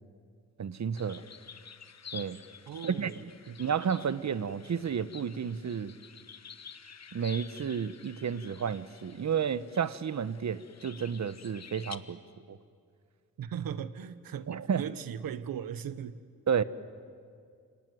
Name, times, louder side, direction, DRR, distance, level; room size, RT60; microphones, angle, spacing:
voice 1, 0.6-1.2 2.1-2.4 2.9-3.1 3.6-5.9 7.1-12.2 12.5-12.6 14.5-14.8 16.5-16.6, right 7 dB, 55° right, 1.1 m, -31 dB
sound 1, 1.0-12.0, left 6 dB, 50° left, 1.3 m, -50 dB
voice 2, 2.7-3.6 13.4-16.2, right 8 dB, 90° right, 1.1 m, -38 dB
29.0 x 19.0 x 9.7 m
cardioid pair, 65°, 34 cm